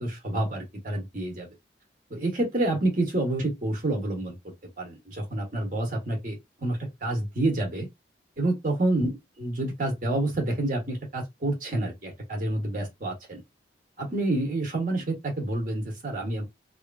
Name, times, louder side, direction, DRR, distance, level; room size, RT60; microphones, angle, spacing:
voice 1, 0.0-1.5 2.1-7.9 8.4-13.4 14.0-16.4, right 2 dB, 45° right, 1.1 m, -28 dB
3.1 x 2.5 x 2.3 m
head